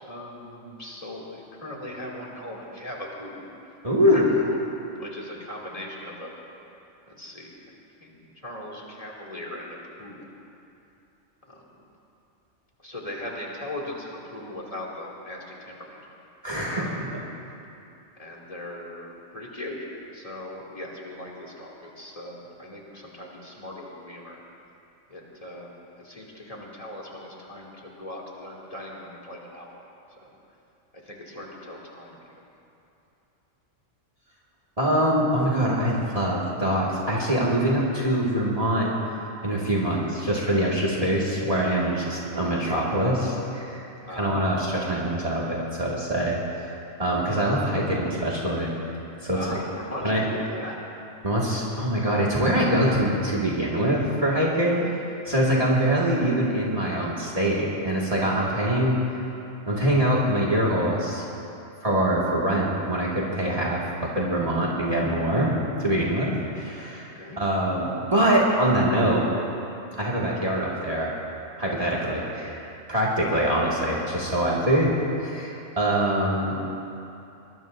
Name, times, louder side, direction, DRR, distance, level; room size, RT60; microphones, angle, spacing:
voice 1, 0.0-3.5 4.0-4.6 5.0-6.3 7.1-7.5 8.0-10.2 11.5-11.7 12.8-16.0 16.7-17.3 18.2-19.8 20.1-24.4 25.1-25.7 26.0-29.8 30.2-30.3 30.9-32.2 40.8-41.1 44.0-44.3 49.3-50.8 54.8-54.9 55.5-55.6 66.1-66.4 67.1-67.4, left 1 dB, 30° left, -4 dB, 2.7 m, -39 dB
voice 2, 3.8-4.4 16.4-16.9 34.8-38.9 39.4-43.8 44.1-46.7 47.0-48.7 49.2-49.6 50.0-50.3 51.2-54.8 55.3-59.0 59.7-61.2 61.8-65.5 65.8-67.1 67.4-69.2 70.0-71.1 71.6-74.9 75.2-76.6, right 1 dB, 30° right, -4 dB, 2.1 m, -24 dB
23.5 x 21.0 x 2.6 m, 2.8 s
omnidirectional pair, 1.3 m